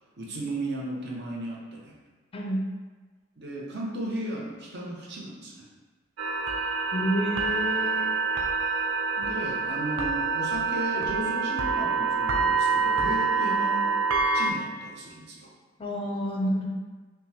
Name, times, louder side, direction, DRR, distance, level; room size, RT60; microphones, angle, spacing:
voice 1, 0.2-1.9 3.4-5.7 9.2-13.9 14.3-15.5, right 1 dB, 55° right, -3 dB, 0.8 m, -35 dB
voice 2, 2.3-2.7 6.9-8.1 13.4-13.5 15.8-16.7, equal, 30° left, -1 dB, 0.4 m, -29 dB
sound 1, 6.2-14.5, right 4 dB, 85° right, 0.5 m, -26 dB
5.1 x 2.1 x 2.9 m, 1.4 s
head